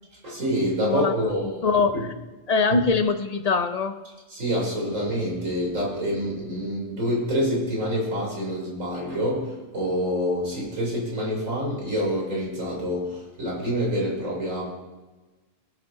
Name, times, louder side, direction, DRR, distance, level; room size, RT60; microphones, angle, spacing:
voice 1, 0.2-1.7 2.7-2.8 4.3-14.6, equal, 80° right, -4 dB, 3.9 m, -27 dB
voice 2, 0.8-1.3 1.6-1.9 2.5-4.0, left 4 dB, 45° left, 8 dB, 0.5 m, -22 dB
18.0 x 6.4 x 3.9 m, 1.2 s
omnidirectional pair, 1.3 m